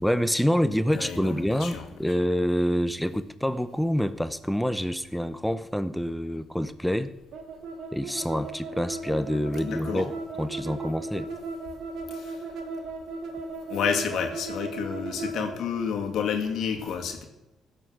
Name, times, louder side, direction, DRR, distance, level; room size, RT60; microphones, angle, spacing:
voice 1, 0.0-7.1 7.9-11.3, equal, ahead, 0.7 m, -27 dB
voice 2, 0.9-1.9 9.6-10.1 12.1-12.4 13.7-17.2, left 6 dB, 75° left, 2.0 m, -30 dB
sound 1, 7.3-15.6, right 3 dB, 80° right, 2.3 m, -36 dB
16.0 x 7.2 x 6.4 m
cardioid pair, 90°, 0 cm